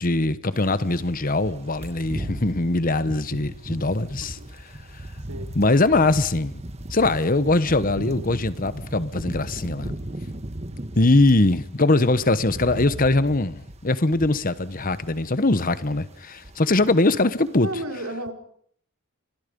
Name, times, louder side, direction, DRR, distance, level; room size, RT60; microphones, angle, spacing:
voice 1, 0.0-4.4 5.5-6.6 6.9-9.9 11.0-17.7, left 2 dB, 40° left, 1.2 m, -21 dB
sound 1, 0.6-11.5 11.9-15.3 15.5-15.8 16.1-16.9 17.2-17.4, right 1 dB, 30° right, 1.4 m, -37 dB
voice 2, 16.7-17.0 17.6-18.3, right 1 dB, 80° right, 4.6 m, -32 dB
29.5 x 26.5 x 5.4 m
head